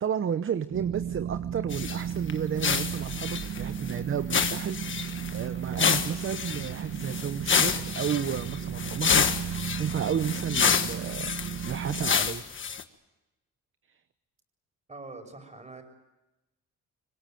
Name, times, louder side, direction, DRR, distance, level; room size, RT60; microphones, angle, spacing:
voice 1, 0.0-12.4 13.9-14.0, right 8 dB, 45° right, 12 dB, 0.9 m, -32 dB
sound 1, 0.7-12.1, right 9 dB, 70° right, 1.5 m, -35 dB
sound 2, 1.7-2.0 2.3-2.4 2.6-3.9 4.3-5.4 5.7-12.8, left 6 dB, 40° left, 1.5 m, -28 dB
voice 2, 14.9-15.8, right 3 dB, 25° right, 6 dB, 6.1 m, -43 dB
25.0 x 20.0 x 9.1 m, 1.0 s
cardioid pair, 90°, 30 cm